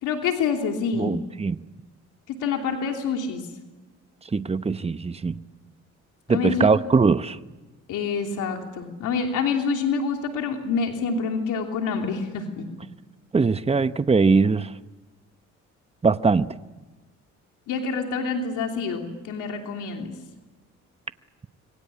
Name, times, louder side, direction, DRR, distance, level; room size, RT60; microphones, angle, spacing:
voice 1, 0.0-1.1 2.3-3.4 6.3-6.7 7.9-12.7 17.7-20.1, left 5 dB, 85° left, 3.1 m, -27 dB
voice 2, 1.0-1.6 4.3-5.4 6.3-7.4 13.3-14.7 16.0-16.5, right 4 dB, 20° right, 1.0 m, -21 dB
26.5 x 23.5 x 8.5 m
cardioid pair, 90°, 30 cm